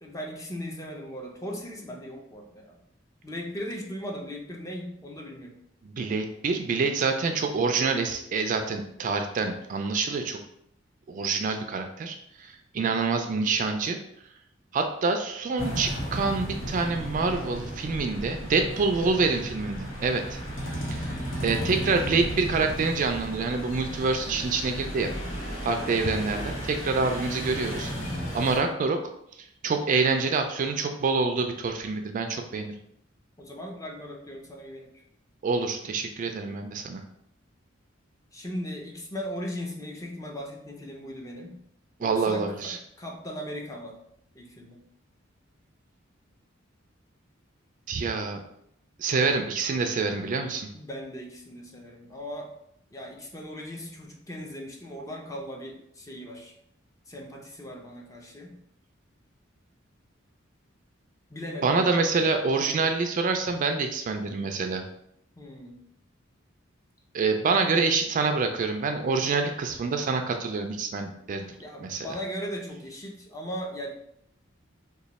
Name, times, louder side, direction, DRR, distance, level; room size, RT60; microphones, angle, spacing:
voice 1, 0.0-2.8 3.2-5.5 12.7-13.1 20.9-21.3 25.6-25.8 33.4-34.9 38.3-41.6 42.0-44.0 44.3-44.8 50.7-52.5 52.9-56.5 57.1-58.6 61.3-61.7 65.4-65.8 71.6-73.9, equal, 15° left, 0 dB, 0.5 m, -38 dB
voice 2, 5.8-10.4 11.1-14.0 14.7-20.4 20.9-21.0 21.4-25.1 25.6-29.0 29.6-32.7 35.4-37.0 42.0-42.8 47.9-48.4 49.0-50.7 61.6-64.8 67.1-71.5 71.8-72.1, right 4 dB, 40° right, 5 dB, 0.3 m, -26 dB
sound 1, 15.6-28.6, equal, 85° left, 1.0 m, -34 dB
3.0 x 2.2 x 4.0 m, 0.73 s
head